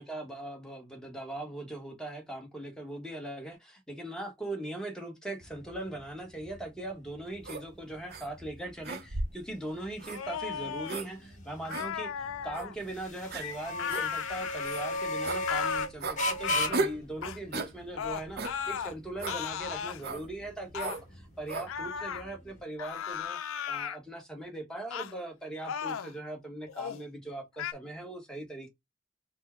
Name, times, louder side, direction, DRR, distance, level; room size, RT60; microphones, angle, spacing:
voice 1, 0.0-23.4 23.7-28.7, right 1 dB, 5° left, 1.1 m, -40 dB
sound 1, 5.4-22.6, left 1 dB, 40° left, 1.2 m, -38 dB
sound 2, 7.4-7.6 8.1-8.3 8.8-9.4 10.0-10.2 10.9-11.1 11.7-11.9 12.5-12.7 13.3-13.5 13.9-14.1 14.6-14.8 15.2-15.4 16.0-16.2 16.7-17.0 17.5-17.7 18.4-18.6 19.2-19.4 20.0-20.2 20.8-21.0 21.5-21.7, right 3 dB, 50° right, 0.8 m, -34 dB
sound 3, 10.1-11.0 11.6-12.7 13.8-15.0 15.5-15.9 16.4-16.8 17.2-17.4 18.0-18.9 19.3-20.0 20.7-21.0 21.7-22.2 22.8-24.0 24.9-25.1 25.6-26.1 26.7-27.0 27.6-27.7, left 8 dB, 80° left, 0.4 m, -36 dB
4.3 x 2.2 x 4.3 m
head